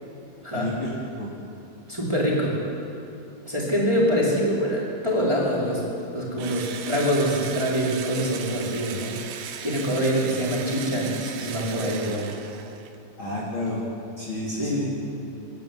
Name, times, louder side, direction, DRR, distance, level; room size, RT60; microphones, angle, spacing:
voice 1, 0.5-1.3 13.2-13.8 14.2-14.9, left 1 dB, 35° left, -6 dB, 3.8 m, -31 dB
voice 2, 1.9-2.6 3.4-5.8 6.1-9.2 9.6-12.3 14.5-14.9, equal, 5° right, -5 dB, 4.8 m, -25 dB
Engine / Drill, 6.4-13.0, right 8 dB, 80° right, 3.0 m, -37 dB
28.0 x 12.0 x 9.6 m, 2.9 s
omnidirectional pair, 4.3 m